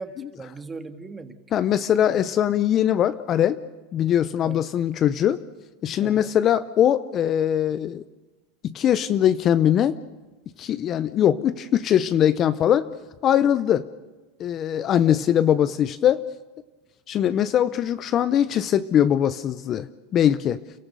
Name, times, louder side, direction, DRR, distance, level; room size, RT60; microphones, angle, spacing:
voice 1, 0.0-1.4 4.4-4.6 6.0-6.3 15.1-15.2, right 4 dB, 15° right, 7 dB, 1.7 m, -38 dB
voice 2, 1.5-3.6 3.9-5.4 5.8-8.0 8.6-10.0 10.6-12.9 13.2-13.8 14.4-16.2 17.1-20.6, left 10 dB, 35° left, 14 dB, 0.6 m, -21 dB
29.5 x 14.5 x 6.8 m, 1.2 s
supercardioid pair, 130°, 0 cm